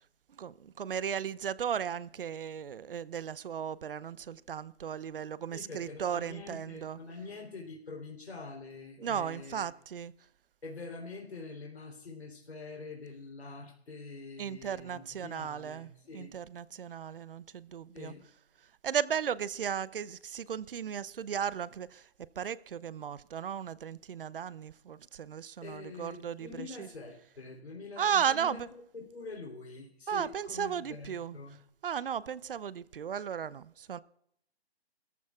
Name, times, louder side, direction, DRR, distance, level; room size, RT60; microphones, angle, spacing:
voice 1, 0.4-7.0 9.0-10.1 14.4-15.9 16.1-18.1 18.8-22.0 22.4-26.9 28.0-28.7 30.1-31.4 31.8-34.0, right 8 dB, 60° right, 0.7 m, -35 dB
voice 2, 5.5-9.7 10.6-16.3 17.9-18.2 25.6-31.6, left 3 dB, 85° left, 3.4 m, -45 dB
24.5 x 14.5 x 2.4 m
hypercardioid pair, 155°, 31 cm